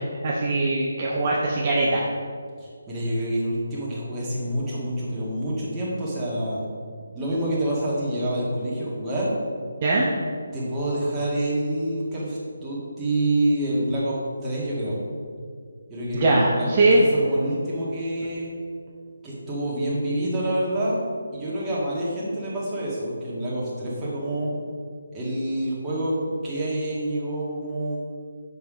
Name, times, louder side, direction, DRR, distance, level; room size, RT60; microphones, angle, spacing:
voice 1, 0.0-2.1 9.8-10.1 16.1-17.0, right 2 dB, 30° right, -4 dB, 0.8 m, -21 dB
voice 2, 2.6-6.6 7.1-9.4 10.5-15.0 15.9-18.5 19.2-21.0 21.3-24.5 25.1-28.0, right 1 dB, 10° right, -8 dB, 1.8 m, -27 dB
6.8 x 5.6 x 5.0 m, 2.1 s
figure-of-eight pair, 165°, 0 cm